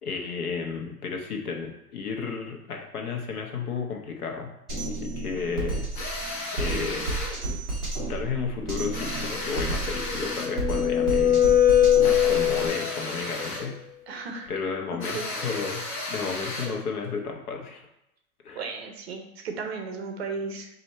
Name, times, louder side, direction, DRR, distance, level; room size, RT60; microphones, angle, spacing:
voice 1, 0.0-4.5 5.0-5.9 6.5-7.0 8.1-11.4 12.0-13.8 14.5-15.8 16.1-17.8 18.4-18.6, left 5 dB, 75° left, 2 dB, 1.1 m, -32 dB
Drum kit, 4.7-12.7, right 2 dB, ahead, 0.4 m, -32 dB
sound 1, 5.9-7.4 8.9-10.6 12.0-13.7 15.0-16.8, left 2 dB, 30° left, 0.9 m, -34 dB
sound 2, 10.0-13.0, left 11 dB, 50° left, 0.5 m, -21 dB
voice 2, 14.1-14.5 14.9-15.2 18.5-20.7, right 4 dB, 45° right, 3 dB, 0.7 m, -35 dB
4.4 x 2.7 x 4.1 m, 0.86 s
hypercardioid pair, 160°, 45 cm